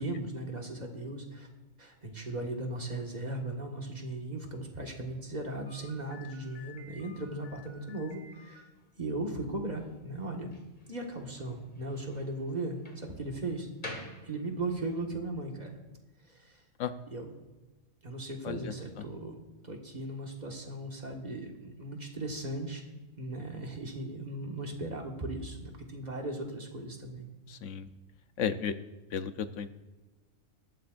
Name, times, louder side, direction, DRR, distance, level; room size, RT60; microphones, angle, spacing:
voice 1, 0.0-1.5 1.8-8.6 9.0-10.5 10.9-13.7 14.2-15.8 16.3-16.6 17.1-17.3 18.0-19.4 19.6-22.8 23.2-27.3, right 2 dB, 35° right, 1 dB, 1.7 m, -37 dB
Slam, 5.6-15.0, left 2 dB, 35° left, 2.0 m, -50 dB
voice 2, 27.5-27.9 28.4-28.8 29.1-29.7, left 7 dB, 70° left, 11 dB, 1.0 m, -33 dB
19.0 x 13.0 x 2.5 m, 1.1 s
omnidirectional pair, 1.4 m